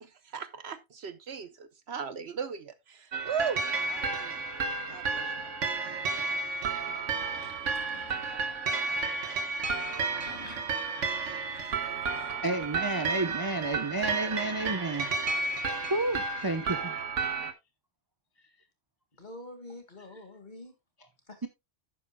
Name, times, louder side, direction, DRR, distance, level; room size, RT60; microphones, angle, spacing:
voice 1, 0.0-4.5 4.9-5.5, right 6 dB, 60° right, 1.0 m, -38 dB
sound 1, 3.1-17.5, right 4 dB, 80° right, 1.5 m, -32 dB
sound 2, 7.1-8.7 9.8-12.9, left 2 dB, 60° left, 2.8 m, -52 dB
voice 2, 12.4-15.1 15.9-17.1, right 2 dB, 20° right, 0.7 m, -31 dB
voice 3, 19.2-20.7 21.3-21.5, left 1 dB, 40° left, 2.1 m, -46 dB
11.0 x 9.2 x 2.2 m
omnidirectional pair, 1.3 m